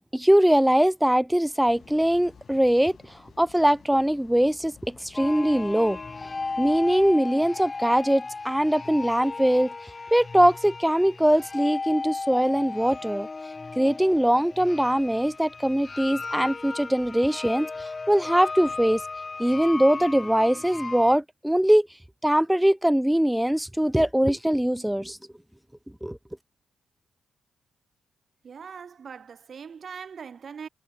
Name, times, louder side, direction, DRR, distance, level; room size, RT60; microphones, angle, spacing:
voice 1, 0.1-2.9 3.4-6.0 6.6-9.7 10.1-13.3 13.8-19.0 19.4-21.9 22.2-25.2 26.0-26.2, equal, 5° right, 0.4 m, -22 dB
sound 1, 1.7-7.2, left 6 dB, 55° left, 3.3 m, -53 dB
sound 2, 5.1-21.2, left 3 dB, 35° left, 1.0 m, -35 dB
voice 2, 28.4-30.7, right 6 dB, 55° right, 1.1 m, -41 dB
hypercardioid pair, 40°, 0 cm